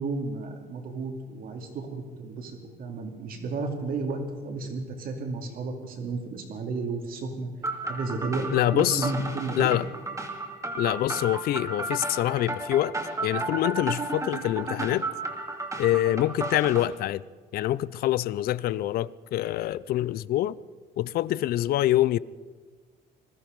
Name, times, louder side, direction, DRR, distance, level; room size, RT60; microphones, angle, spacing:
voice 1, 0.0-7.5 7.9-9.7, right 3 dB, 60° right, 2.7 m, -32 dB
sound 1, 7.6-16.9, right 2 dB, 20° right, 2.2 m, -33 dB
voice 2, 8.5-9.1 9.6-9.9 10.8-12.9 13.2-15.1 15.8-17.2 17.5-20.6 21.0-22.2, left 14 dB, 65° left, 0.5 m, -25 dB
20.0 x 13.0 x 5.2 m
cardioid pair, 110°, 17 cm